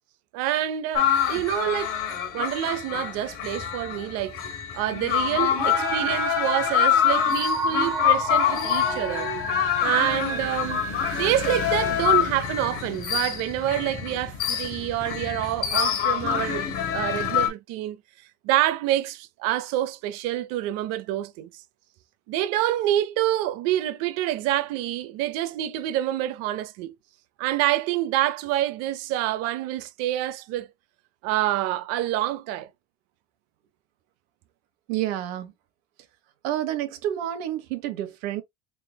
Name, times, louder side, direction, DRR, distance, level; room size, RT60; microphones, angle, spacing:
voice 1, 0.3-1.9 2.3-4.4 4.7-9.3 9.8-10.8 11.1-16.7 16.9-18.0 18.4-21.5 22.3-26.9 27.4-30.7 31.2-32.7, right 13 dB, 55° right, 0.7 m, -27 dB
sound 1, 0.9-17.5, left 10 dB, 45° left, 1.4 m, -26 dB
sound 2, 5.6-12.8, right 2 dB, 10° right, 0.6 m, -31 dB
voice 2, 34.9-35.5 36.4-38.4, right 12 dB, 75° right, 1.3 m, -29 dB
3.8 x 3.8 x 2.3 m
cardioid pair, 155°, 31 cm